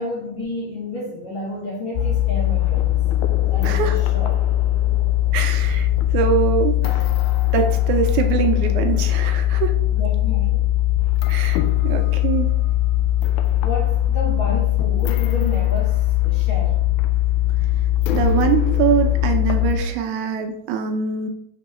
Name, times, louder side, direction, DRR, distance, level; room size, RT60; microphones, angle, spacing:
voice 1, 0.0-3.0 3.5-4.4 9.9-10.7 13.6-16.8, left 1 dB, 55° left, -4 dB, 1.5 m, -31 dB
sound 1, 2.0-19.8, left 14 dB, 80° left, 1.9 m, -20 dB
voice 2, 3.6-4.0 5.3-5.9 6.1-7.0 7.5-9.7 11.3-12.5 18.1-21.3, right 8 dB, 80° right, 5 dB, 1.9 m, -23 dB
6.1 x 3.7 x 4.2 m, 0.72 s
omnidirectional pair, 3.6 m